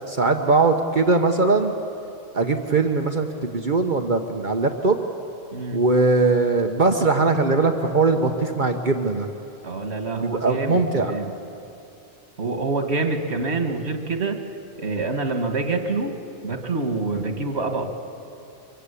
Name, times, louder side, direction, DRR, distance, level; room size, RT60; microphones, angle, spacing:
voice 1, 0.1-1.7 2.3-5.0 5.7-9.3 10.1-11.1, right 3 dB, 50° right, 5 dB, 1.2 m, -20 dB
voice 2, 5.5-5.8 9.6-11.3 12.4-14.4 14.8-16.1 16.4-17.9, right 3 dB, 80° right, 5 dB, 2.1 m, -26 dB
24.0 x 23.0 x 8.4 m, 2.7 s
omnidirectional pair, 1.1 m